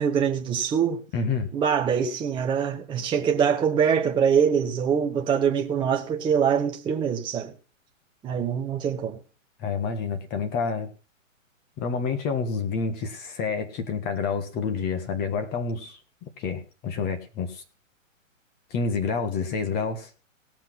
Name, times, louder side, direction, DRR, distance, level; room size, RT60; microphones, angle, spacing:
voice 1, 0.0-1.0 1.5-7.5 8.2-9.2, right 7 dB, 10° right, 1.0 m, -24 dB
voice 2, 1.1-1.5 9.6-10.9 11.8-17.6 18.7-20.1, left 5 dB, 25° left, 1.5 m, -28 dB
18.0 x 6.0 x 5.9 m
hypercardioid pair, 135°, 40 cm